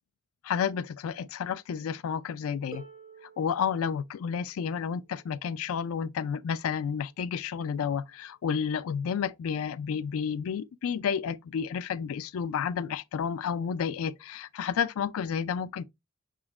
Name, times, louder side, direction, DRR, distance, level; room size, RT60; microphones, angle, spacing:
voice 1, 0.4-2.8 3.4-15.8, left 7 dB, 90° left, 0.3 m, -31 dB
Harp, 2.7-8.5 9.6-9.7, right 3 dB, 20° right, 1.4 m, -54 dB
5.2 x 3.7 x 2.3 m
head